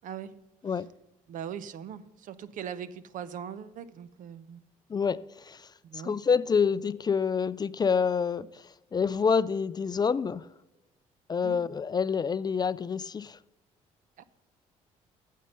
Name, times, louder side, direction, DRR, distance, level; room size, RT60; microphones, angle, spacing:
voice 1, 1.3-4.6 5.8-6.2 11.4-11.6 14.2-14.3, right 8 dB, 70° right, 0.7 m, -40 dB
voice 2, 4.9-10.5 11.3-13.4, left 6 dB, 30° left, 0.4 m, -27 dB
9.3 x 7.4 x 5.5 m
supercardioid pair, 80°, 14 cm